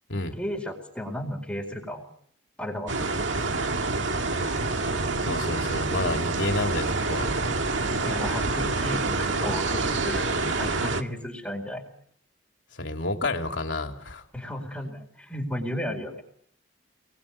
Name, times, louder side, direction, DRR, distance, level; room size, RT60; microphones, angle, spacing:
voice 1, 0.4-2.0 2.6-3.1 8.1-11.8 14.3-16.2, left 1 dB, 5° left, 0 dB, 4.4 m, -34 dB
sound 1, 2.9-11.0, right 3 dB, 85° right, 1.9 m, -27 dB
voice 2, 5.2-7.3 12.7-14.2, left 2 dB, 75° left, 4 dB, 3.1 m, -30 dB
28.0 x 21.0 x 8.6 m, 0.70 s
head